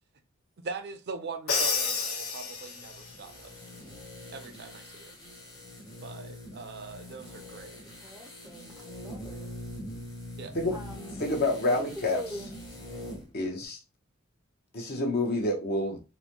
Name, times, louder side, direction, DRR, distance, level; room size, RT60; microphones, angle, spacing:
voice 1, 0.6-3.6 4.3-5.1 6.0-7.7 10.4-10.5, right 4 dB, 50° right, 0.6 m, -41 dB
Crash cymbal, 1.5-3.1, left 5 dB, 85° left, 1.2 m, -30 dB
sound 1, 2.7-13.3 13.6-13.7, left 1 dB, 20° left, 1.0 m, -44 dB
voice 2, 8.0-9.5 10.7-11.2 11.6-12.5, right 1 dB, ahead, 0.6 m, -43 dB
voice 3, 11.2-12.2 13.3-13.8 14.7-16.0, left 2 dB, 50° left, 0.9 m, -28 dB
4.0 x 2.2 x 2.9 m
head